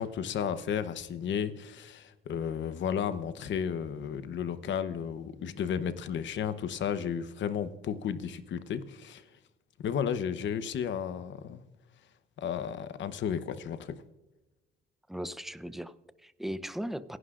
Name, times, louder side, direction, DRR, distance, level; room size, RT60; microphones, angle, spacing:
voice 1, 0.0-9.2 9.8-11.6 12.4-14.0, left 8 dB, 70° left, 12 dB, 0.9 m, -33 dB
voice 2, 15.1-17.2, equal, ahead, 13 dB, 0.7 m, -38 dB
28.5 x 11.0 x 2.5 m, 1.1 s
cardioid pair, 90°, 20 cm